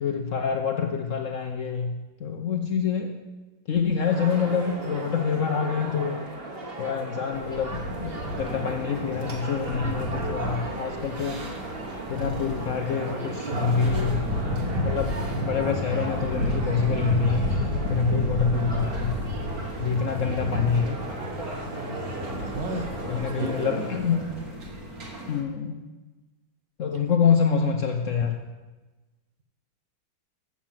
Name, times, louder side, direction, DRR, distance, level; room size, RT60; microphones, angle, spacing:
voice 1, 0.0-3.2 3.7-6.2 6.8-11.4 12.1-14.2 14.6-15.1 15.5-17.5 17.8-19.2 19.8-21.0 23.1-24.3 25.3-25.8 26.8-28.4, left 6 dB, 60° left, 3 dB, 0.8 m, -26 dB
sound 1, 4.0-24.0, right 2 dB, 35° right, 1.4 m, -37 dB
sound 2, 7.3-25.4, left 1 dB, 50° right, 2.0 m, -31 dB
voice 2, 22.5-23.8, right 2 dB, 75° right, 5 dB, 1.7 m, -34 dB
7.3 x 7.2 x 7.3 m, 1.2 s
omnidirectional pair, 2.0 m